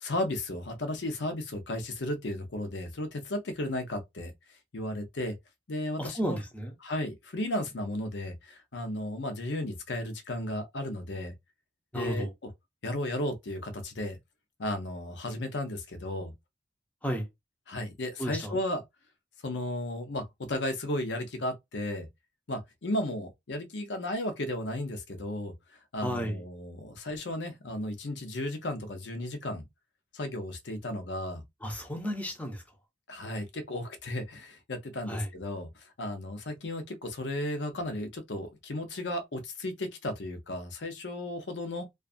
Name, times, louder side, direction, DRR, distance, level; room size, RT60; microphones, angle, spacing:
voice 1, 0.0-4.3 4.7-5.3 5.7-6.4 6.8-11.3 11.9-12.3 12.8-14.2 14.6-16.3 17.7-18.8 19.4-22.1 22.5-25.5 25.9-29.6 30.1-31.4 33.1-35.7 36.0-41.9, left 1 dB, 70° left, 0.7 m, -34 dB
voice 2, 6.0-6.7 11.9-12.3 17.0-17.3 18.2-18.6 26.0-26.4 31.6-32.6 35.1-35.3, equal, 10° left, 0.7 m, -33 dB
2.5 x 2.3 x 2.5 m
head